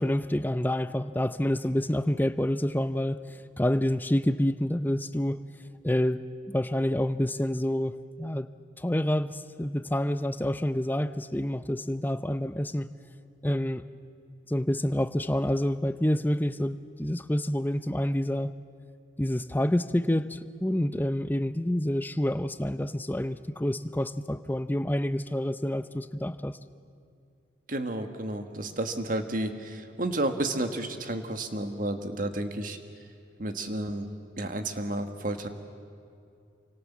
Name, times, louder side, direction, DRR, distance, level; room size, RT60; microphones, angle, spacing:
voice 1, 0.0-3.2 3.6-5.4 5.8-6.2 6.5-8.5 8.8-12.9 13.4-13.8 14.5-18.5 19.2-26.6, left 1 dB, 10° left, 12 dB, 0.6 m, -28 dB
voice 2, 27.7-32.8 33.4-34.1 34.4-35.5, right 1 dB, 45° right, 7 dB, 1.8 m, -31 dB
28.5 x 25.0 x 7.4 m, 2.5 s
head